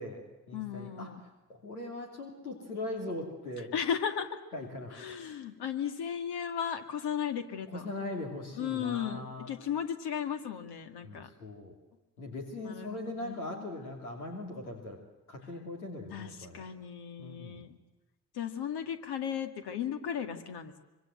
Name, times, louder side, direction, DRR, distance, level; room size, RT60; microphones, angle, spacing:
voice 1, 0.0-3.7 4.5-5.4 7.7-9.5 11.0-11.7 12.2-15.0 15.3-16.7 17.2-17.6, left 2 dB, 85° left, 0 dB, 3.0 m, -40 dB
voice 2, 0.5-1.2 3.7-4.3 4.9-7.8 8.5-11.3 12.6-13.6 16.1-17.8 18.3-20.8, left 8 dB, 65° left, 7 dB, 2.3 m, -36 dB
25.0 x 25.0 x 7.8 m, 1.1 s
figure-of-eight pair, 40°, 43 cm